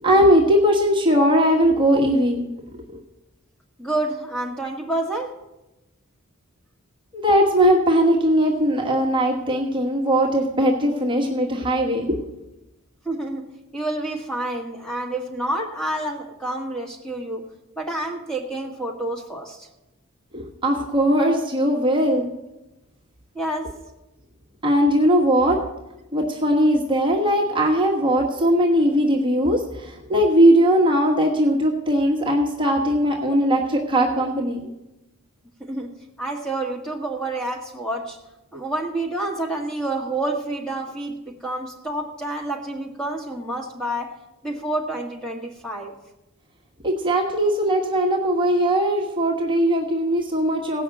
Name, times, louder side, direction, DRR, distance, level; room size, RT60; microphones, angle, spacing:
voice 1, 0.0-2.4 2.9-3.0 7.1-12.2 20.3-22.3 24.6-25.6 26.1-34.6 46.8-50.8, equal, 20° right, -1 dB, 1.3 m, -19 dB
voice 2, 3.8-5.4 13.0-17.4 17.8-19.7 23.3-23.8 35.6-38.2 38.5-44.1 44.4-45.9, right 1 dB, 5° left, 1 dB, 1.7 m, -28 dB
17.0 x 5.7 x 7.7 m, 0.97 s
head